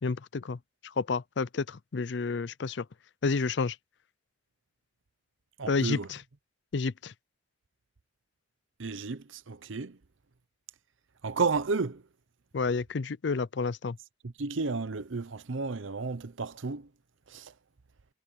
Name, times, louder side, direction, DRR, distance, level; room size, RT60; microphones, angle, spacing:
voice 1, 0.0-0.6 1.0-2.8 3.2-3.8 5.7-6.2 6.7-7.1 12.5-14.0, left 4 dB, 60° left, 0.5 m, -30 dB
voice 2, 5.6-6.1 8.8-10.0 11.2-12.0 14.2-16.9 17.3-17.5, right 4 dB, 80° right, 0.8 m, -32 dB
head